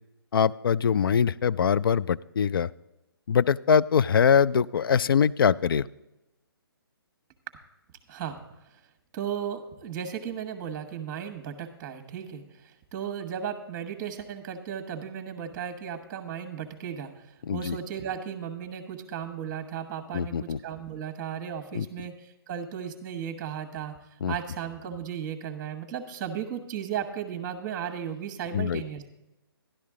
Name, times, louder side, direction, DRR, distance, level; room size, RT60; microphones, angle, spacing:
voice 1, 0.3-2.7 3.3-5.9 17.5-17.8 20.1-20.6 21.7-21.9 24.2-24.3 28.5-28.8, left 7 dB, 65° left, 18 dB, 0.4 m, -23 dB
voice 2, 8.1-8.4 9.1-24.0 24.3-29.0, right 8 dB, 20° right, 7 dB, 1.2 m, -35 dB
12.5 x 11.0 x 3.7 m, 0.95 s
figure-of-eight pair, 145°, 13 cm